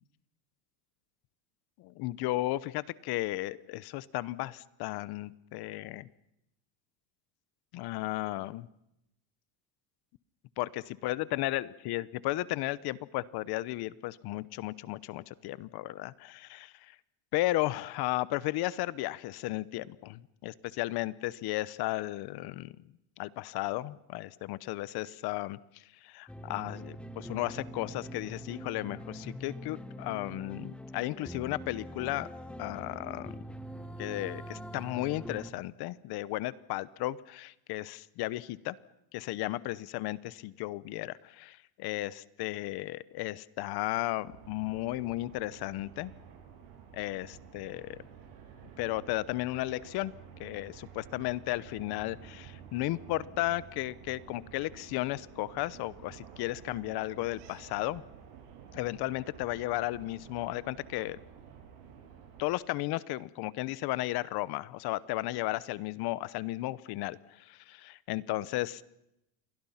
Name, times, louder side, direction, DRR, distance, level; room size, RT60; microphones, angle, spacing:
voice 1, 1.8-6.1 7.7-8.7 10.6-16.9 17.3-22.7 23.2-25.6 26.0-32.3 32.6-33.4 34.0-38.8 39.1-46.1 46.9-48.0 48.8-50.1 50.4-58.0 58.7-61.2 62.4-68.8, left 17 dB, 50° left, 18 dB, 1.0 m, -34 dB
sound 1, 26.3-35.5, equal, ahead, 1.0 m, -43 dB
sound 2, 44.2-62.4, right 8 dB, 85° right, 7.9 m, -51 dB
28.5 x 23.0 x 5.8 m, 0.84 s
cardioid pair, 150°, 49 cm